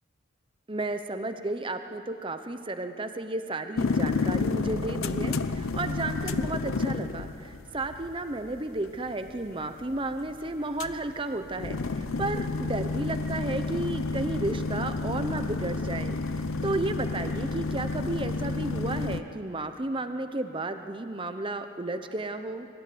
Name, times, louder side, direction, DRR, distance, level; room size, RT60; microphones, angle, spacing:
voice 1, 0.7-22.7, right 2 dB, 25° right, 8 dB, 0.8 m, -33 dB
sound 1, 3.8-19.2, left 3 dB, 85° left, 0.8 m, -31 dB
25.0 x 14.5 x 9.6 m, 2.5 s
head